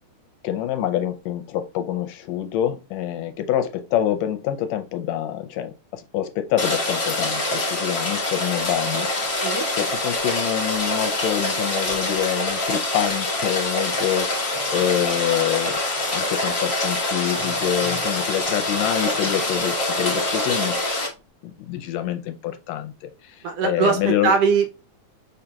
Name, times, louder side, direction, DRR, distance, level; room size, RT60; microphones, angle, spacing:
voice 1, 0.4-9.1 9.8-15.8 16.1-20.8 21.4-24.3, left 11 dB, 80° left, 1.7 m, -26 dB
Rain, 6.6-21.1, left 2 dB, 35° left, 1.0 m, -25 dB
Printer, 9.9-10.2 10.7-11.0 11.3-11.4 11.9-12.1 12.5-12.7 13.5-20.8, right 1 dB, 25° right, 0.9 m, -42 dB
voice 2, 23.4-24.7, right 5 dB, 75° right, 1.6 m, -21 dB
5.8 x 3.9 x 2.2 m
omnidirectional pair, 3.3 m